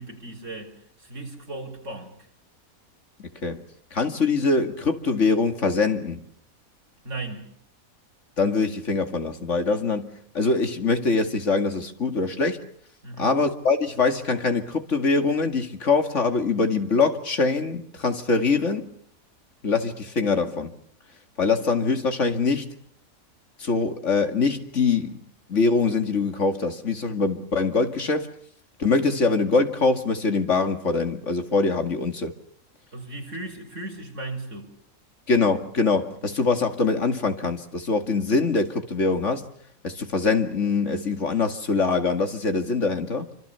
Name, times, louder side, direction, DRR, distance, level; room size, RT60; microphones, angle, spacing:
voice 1, 0.0-2.3 7.0-7.6 13.0-13.3 32.9-34.7, right 2 dB, 55° right, 5.2 m, -36 dB
voice 2, 3.2-3.6 3.9-6.2 8.4-10.1 10.3-12.6 13.2-18.9 19.6-20.7 21.4-22.7 23.6-25.2 25.5-28.3 28.8-32.3 35.3-39.4 39.8-43.3, left 4 dB, 55° left, 2.5 m, -23 dB
27.5 x 26.0 x 6.9 m
omnidirectional pair, 1.5 m